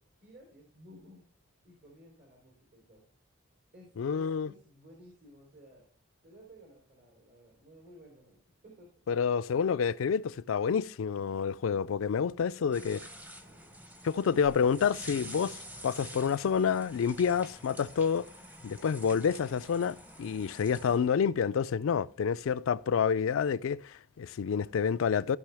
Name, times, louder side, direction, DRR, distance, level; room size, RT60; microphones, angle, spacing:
voice 1, 0.2-1.3 1.6-3.0 3.7-5.9 6.2-8.4 8.6-9.2 12.6-12.8 13.4-13.7, equal, 60° right, 3.4 m, -56 dB
voice 2, 4.0-4.5 9.1-13.0 14.0-18.3 18.6-25.4, left 6 dB, 85° left, 0.4 m, -28 dB
sound 1, 12.7-21.0, equal, 10° right, 0.7 m, -48 dB
15.0 x 5.6 x 3.4 m
head